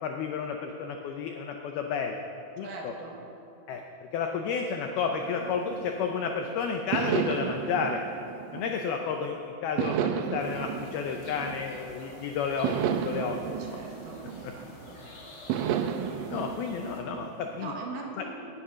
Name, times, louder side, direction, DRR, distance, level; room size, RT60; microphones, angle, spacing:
voice 1, 0.0-2.2 2.6-2.9 3.7-3.8 4.1-8.0 8.5-13.4 14.4-14.5 16.3-17.7 18.2-18.3, left 6 dB, 85° left, 3 dB, 2.2 m, -31 dB
voice 2, 2.6-3.2 13.6-14.2 14.5-15.0 17.6-18.3, right 3 dB, 60° right, -1 dB, 2.7 m, -40 dB
sound 1, 5.2-6.3 6.9-9.2 9.8-12.0 12.6-14.9 15.5-17.7, right 9 dB, 85° right, 3.0 m, -33 dB
sound 2, 10.4-17.0, left 1 dB, 40° left, 1.4 m, -49 dB
18.0 x 9.9 x 6.3 m, 2.9 s
omnidirectional pair, 5.5 m